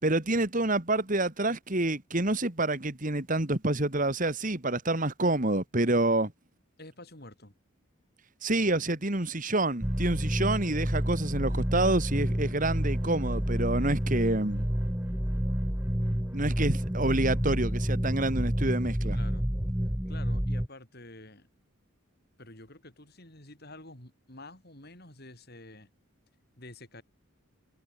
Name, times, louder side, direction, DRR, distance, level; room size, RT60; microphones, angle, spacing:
voice 1, 0.0-6.3 8.4-14.7 16.3-19.2, right 2 dB, 40° right, 2.2 m, -28 dB
voice 2, 6.8-7.5 19.1-19.5 20.1-21.5 22.4-25.9 26.6-27.0, left 2 dB, 45° left, 6.4 m, -49 dB
sound 1, 9.8-20.7, equal, 10° right, 1.4 m, -29 dB
head